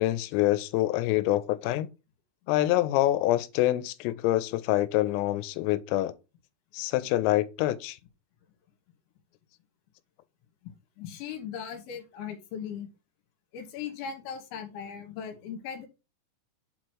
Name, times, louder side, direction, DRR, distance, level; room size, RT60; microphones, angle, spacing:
voice 1, 0.0-1.9 2.5-6.1 6.7-8.0, left 15 dB, 90° left, 3.2 m, -26 dB
voice 2, 11.0-12.9 13.5-15.9, left 7 dB, 70° left, 3.3 m, -38 dB
8.0 x 3.0 x 6.1 m
omnidirectional pair, 5.8 m